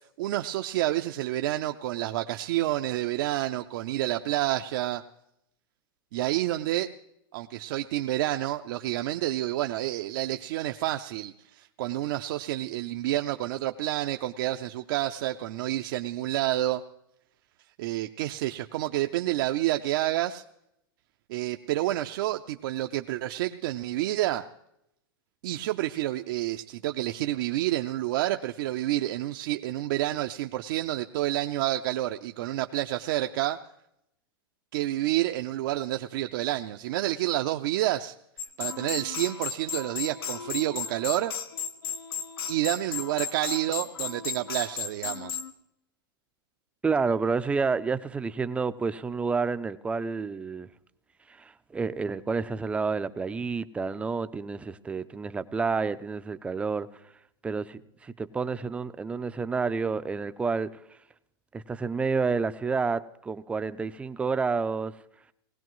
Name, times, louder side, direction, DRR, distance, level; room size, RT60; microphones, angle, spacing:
voice 1, 0.2-5.0 6.1-6.9 7.3-16.8 17.8-20.4 21.3-24.5 25.4-33.6 34.7-38.2 38.6-41.3 42.5-45.4, right 15 dB, 65° right, 6 dB, 0.5 m, -29 dB
sound 1, 38.4-45.5, left 7 dB, 90° left, 1.2 m, -35 dB
voice 2, 46.8-50.7 51.3-56.9 57.4-60.7 61.5-64.9, right 4 dB, 10° right, 12 dB, 0.4 m, -29 dB
19.5 x 16.0 x 3.1 m, 0.79 s
supercardioid pair, 145°, 12 cm